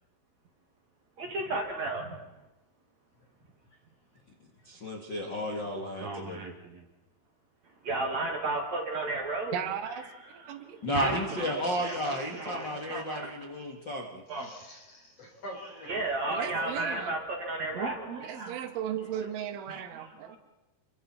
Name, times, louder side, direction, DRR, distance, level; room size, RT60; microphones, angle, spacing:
voice 1, 1.2-2.2 6.0-6.8 7.8-9.6 10.9-11.5 11.8-13.3 14.3-14.5 15.6-18.5 19.7-20.4, right 2 dB, 50° right, 2 dB, 2.7 m, -34 dB
voice 2, 4.6-6.4 10.8-14.2, equal, 80° left, -1 dB, 1.0 m, -33 dB
voice 3, 9.5-10.9 16.3-17.1 18.2-20.4, right 9 dB, 90° right, 7 dB, 4.1 m, -36 dB
voice 4, 11.8-12.1 14.4-15.9, equal, 35° left, 1 dB, 5.0 m, -46 dB
29.5 x 23.5 x 4.3 m, 1.0 s
omnidirectional pair, 5.4 m